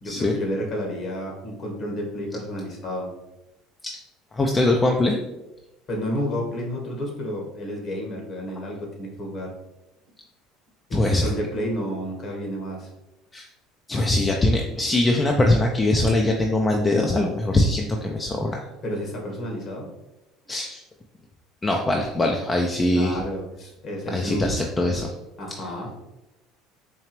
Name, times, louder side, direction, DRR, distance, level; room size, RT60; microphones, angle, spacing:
voice 1, 0.0-3.1 5.9-9.5 10.9-12.9 18.8-19.9 22.9-24.6 25.4-25.9, equal, 50° left, 0 dB, 1.4 m, -31 dB
voice 2, 4.3-5.2 10.9-11.3 13.3-13.4 13.9-18.6 20.5-20.8 21.6-23.2 24.1-25.1, left 2 dB, 25° left, 1 dB, 0.5 m, -22 dB
4.5 x 2.8 x 3.0 m, 0.95 s
hypercardioid pair, 75°, 0 cm